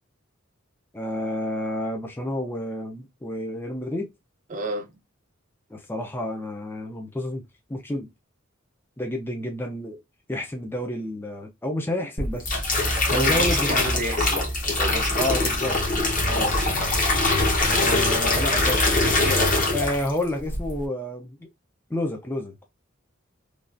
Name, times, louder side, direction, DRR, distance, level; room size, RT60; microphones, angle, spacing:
voice 1, 0.9-4.1 5.7-8.1 9.0-10.0 10.3-12.8 13.1-14.2 15.1-15.8 16.2-16.5 17.6-21.5 21.9-22.6, left 1 dB, 10° left, 0.5 m, -30 dB
voice 2, 4.5-4.9 13.1-15.5 16.7-16.8, right 2 dB, 40° right, 0.5 m, -31 dB
sound 1, 12.2-20.2 20.5-20.8, left 2 dB, 40° left, 1.0 m, -22 dB
3.2 x 2.4 x 2.5 m
head